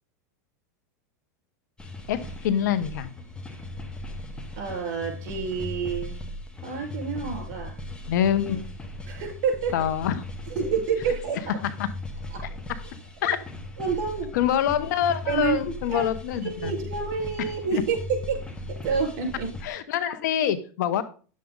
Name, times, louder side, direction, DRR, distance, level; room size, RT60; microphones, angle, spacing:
sound 1, 1.8-19.7, left 1 dB, 10° left, 1.3 m, -38 dB
voice 1, 2.1-3.1 8.1-8.6 9.7-10.2 11.8-11.9 13.2-13.4 14.3-16.7 17.7-17.8 19.6-21.0, left 9 dB, 75° left, 12 dB, 1.2 m, -25 dB
voice 2, 4.6-6.2 6.6-7.7 9.1-9.7 10.5-11.4 12.3-12.6 13.2-13.3 13.8-14.3 15.3-15.6 15.9-16.1 16.4-18.4 18.8-19.5, right 5 dB, 65° right, 1 dB, 5.2 m, -28 dB
10.0 x 7.6 x 4.0 m, 0.39 s
supercardioid pair, 140°, 10 cm